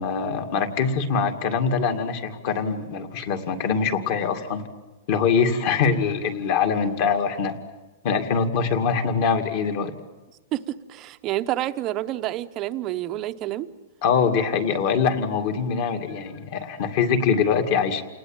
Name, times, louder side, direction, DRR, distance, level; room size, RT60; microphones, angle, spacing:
voice 1, 0.0-4.6 5.1-7.6 8.0-9.9 14.0-18.0, left 6 dB, 35° left, 8 dB, 2.3 m, -23 dB
voice 2, 10.5-13.7, right 14 dB, 25° right, 10 dB, 0.8 m, -28 dB
29.5 x 19.5 x 9.0 m, 1.2 s
supercardioid pair, 175°, 0 cm